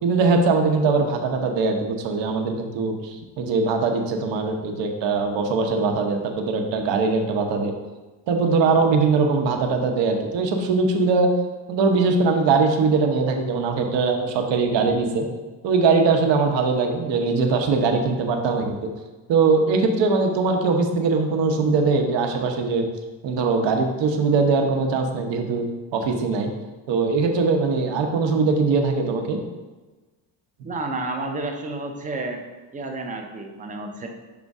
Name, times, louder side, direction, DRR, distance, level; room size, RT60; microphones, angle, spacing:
voice 1, 0.0-7.7 8.3-11.3 11.7-15.3 15.6-18.9 19.3-22.9 23.2-25.7 25.9-26.5 26.9-29.4, right 4 dB, 60° right, 4 dB, 0.9 m, -21 dB
voice 2, 30.6-32.4 32.7-34.1, right 2 dB, 15° right, 3 dB, 0.5 m, -30 dB
6.1 x 3.5 x 5.3 m, 1.2 s
cardioid pair, 165°, 48 cm